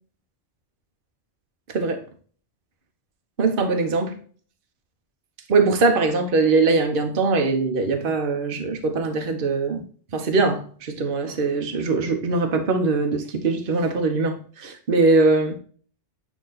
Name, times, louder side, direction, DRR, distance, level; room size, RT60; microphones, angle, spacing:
voice 1, 1.7-2.0 3.4-4.2 5.5-9.8 10.1-15.6, right 3 dB, 50° right, 1.1 m, -21 dB
8.7 x 3.0 x 4.0 m
omnidirectional pair, 1.2 m